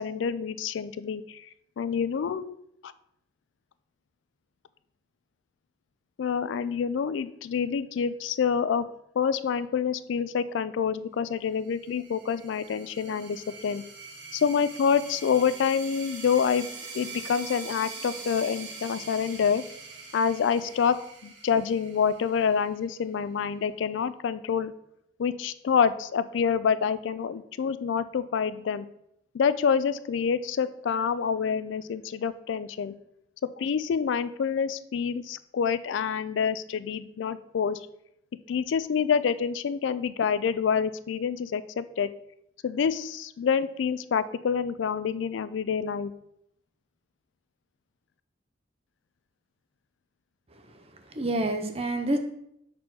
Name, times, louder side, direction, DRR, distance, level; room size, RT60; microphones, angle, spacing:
voice 1, 0.0-1.5 1.8-2.5 2.8-2.9 6.2-8.9 9.2-13.8 14.3-16.7 16.9-19.6 20.1-24.7 25.2-28.9 29.3-32.9 33.6-37.8 38.5-42.1 42.6-46.1, left 6 dB, 80° left, 15 dB, 0.3 m, -27 dB
sound 1, 11.7-22.9, right 4 dB, 70° right, 1.6 m, -43 dB
voice 2, 51.1-52.2, right 1 dB, 30° right, 5 dB, 0.6 m, -28 dB
6.0 x 4.2 x 4.6 m, 0.76 s
head